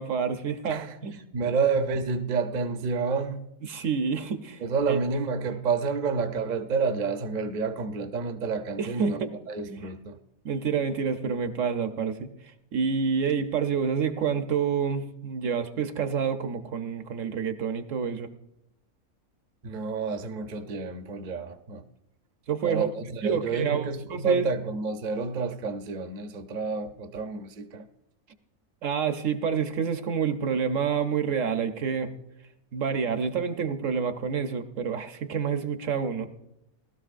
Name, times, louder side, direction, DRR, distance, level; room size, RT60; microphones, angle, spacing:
voice 1, 0.0-1.1 3.7-5.0 8.8-9.3 9.7-9.9 10.4-12.3 12.7-18.3 22.5-22.9 23.2-24.5 28.8-32.1 32.7-36.3, right 6 dB, 65° right, 1.1 m, -28 dB
voice 2, 1.3-3.4 4.6-10.2 19.6-21.8 22.6-27.9, right 4 dB, 40° right, 0.7 m, -29 dB
19.0 x 13.0 x 2.5 m
omnidirectional pair, 1.5 m